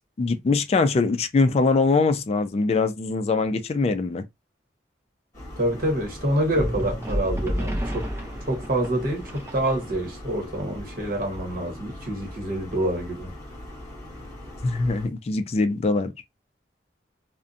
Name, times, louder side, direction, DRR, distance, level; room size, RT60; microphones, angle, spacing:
voice 1, 0.2-4.2 14.6-16.1, left 3 dB, 35° left, 0.3 m, -22 dB
sound 1, 5.3-15.1, left 1 dB, 20° left, 1.3 m, -41 dB
voice 2, 5.6-8.1 8.5-13.3, right 1 dB, 55° right, 1.0 m, -27 dB
sound 2, 6.6-10.1, equal, 15° right, 0.5 m, -30 dB
2.6 x 2.1 x 2.5 m
head